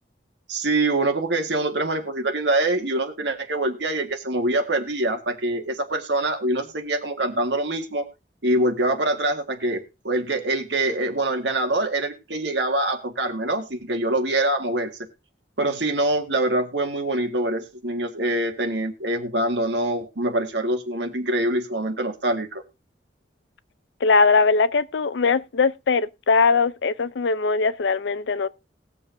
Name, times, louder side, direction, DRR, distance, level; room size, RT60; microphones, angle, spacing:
voice 1, 0.5-8.1 8.4-14.9 15.6-22.6, right 2 dB, 75° right, 1.7 m, -24 dB
voice 2, 24.0-28.5, left 4 dB, 90° left, 0.5 m, -20 dB
20.0 x 6.9 x 2.6 m
head